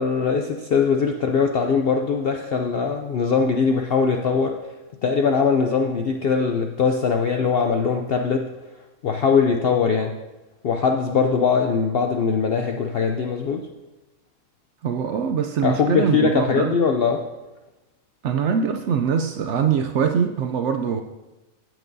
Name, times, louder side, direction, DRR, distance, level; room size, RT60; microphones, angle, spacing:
voice 1, 0.0-4.6 5.0-8.5 9.0-10.2 10.6-13.7 15.6-17.2, left 5 dB, 65° left, 3 dB, 0.6 m, -21 dB
voice 2, 14.8-16.7 18.2-21.0, right 7 dB, 65° right, 6 dB, 0.7 m, -23 dB
16.0 x 6.0 x 2.7 m, 1.1 s
omnidirectional pair, 1.6 m